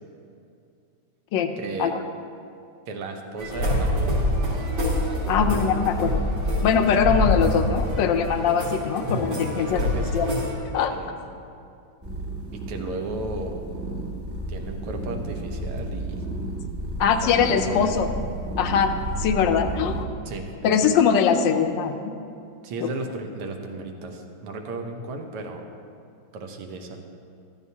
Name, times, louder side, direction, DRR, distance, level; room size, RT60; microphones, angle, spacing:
voice 1, 1.6-1.9 2.9-4.2 7.0-7.1 9.5-10.3 10.9-11.2 12.5-13.6 14.5-16.2 17.0-17.9 20.3-20.8 22.6-25.7 26.3-27.0, right 3 dB, 85° right, 3 dB, 1.9 m, -35 dB
sound 1, 3.4-10.5, left 1 dB, 60° right, 3.4 m, -25 dB
voice 2, 5.3-6.3 6.6-9.8 10.1-10.3 10.7-10.9 17.0-18.1 18.6-20.0 20.6-22.1 22.8-22.9, left 7 dB, 70° left, 7 dB, 1.2 m, -22 dB
sound 2, 12.0-20.1, right 1 dB, 30° right, 1.3 m, -32 dB
14.0 x 12.5 x 2.8 m, 2.5 s
omnidirectional pair, 2.4 m